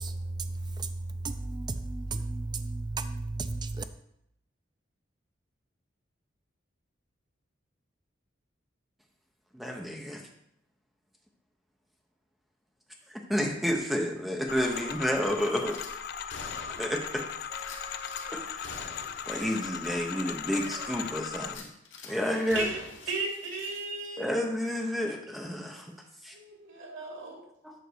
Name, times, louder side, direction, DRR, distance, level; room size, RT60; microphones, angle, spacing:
voice 1, 0.0-3.8, right 2 dB, 25° right, 0.4 m, -34 dB
voice 2, 9.5-10.2 13.1-15.8 16.8-17.2 18.3-18.7 19.3-21.7 22.0-22.8 24.2-25.9 26.2-26.3 27.6-27.7, equal, ahead, 1.0 m, -30 dB
sound 1, 14.5-21.6, left 7 dB, 55° left, 0.4 m, -38 dB
Gunshot gunfire / Glass, 15.7-15.9 16.3-17.1 17.6-18.2 18.6-19.3 19.6-19.7 20.2-20.3 21.4-22.1 22.5-24.3 24.6-24.8, left 4 dB, 80° left, 1.2 m, -45 dB
sound 2, 17.5-18.5 19.2-19.7 20.5-21.1 22.0-22.8, left 1 dB, 20° left, 2.0 m, -47 dB
voice 3, 23.1-24.3 26.3-27.4, right 3 dB, 90° right, 2.6 m, -35 dB
8.1 x 3.7 x 6.5 m
head